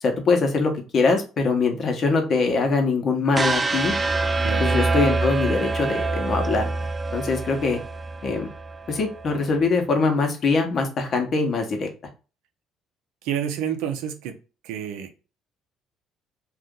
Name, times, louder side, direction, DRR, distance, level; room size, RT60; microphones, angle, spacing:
voice 1, 0.0-3.9 4.6-6.6 7.1-7.8 8.2-8.5 8.9-11.9, left 4 dB, 50° left, 4 dB, 0.9 m, -22 dB
sound 1, 3.3-9.4, right 3 dB, 25° right, 0.4 m, -25 dB
voice 2, 13.2-14.3 14.6-15.2, right 9 dB, 75° right, 6 dB, 0.5 m, -29 dB
2.7 x 2.4 x 3.7 m, 0.33 s
hypercardioid pair, 60°, 0 cm